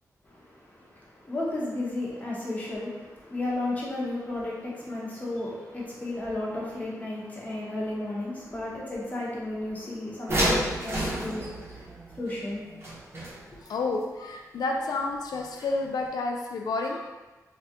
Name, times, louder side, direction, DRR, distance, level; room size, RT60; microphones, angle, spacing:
voice 1, 0.2-11.9 12.1-12.6, left 2 dB, 25° left, -5 dB, 0.8 m, -33 dB
sound 1, 10.3-13.7 15.6-15.7 16.0-16.1, equal, 40° right, 0.8 m, -30 dB
voice 2, 13.7-17.1, left 3 dB, 85° left, 1 dB, 0.4 m, -30 dB
3.4 x 2.3 x 2.8 m, 1.2 s
wide cardioid pair, 145°, 6 cm